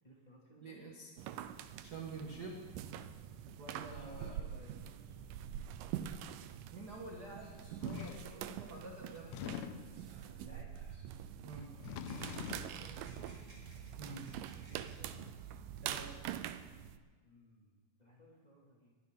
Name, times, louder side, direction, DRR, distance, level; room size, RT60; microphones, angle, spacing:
voice 1, 0.0-0.8 3.9-5.6 10.2-10.7 12.4-13.4 14.4-15.3 17.2-18.9, right 1 dB, 15° left, -5 dB, 2.2 m, -59 dB
voice 2, 0.6-1.1 1.8-2.6 3.6-4.4 6.7-9.6 11.4-11.7 14.0-14.3 15.8-16.2, right 3 dB, 50° right, -1 dB, 1.2 m, -48 dB
sound 1, 1.2-17.0, right 10 dB, 85° right, 2.3 m, -45 dB
sound 2, 7.3-10.4 10.7-11.1 11.8-14.9, equal, 25° right, 5.4 m, -62 dB
sound 3, 7.8-8.3 9.2-10.0 11.6-12.8, left 9 dB, 90° left, 1.6 m, -44 dB
21.0 x 13.5 x 3.8 m, 1.4 s
omnidirectional pair, 3.9 m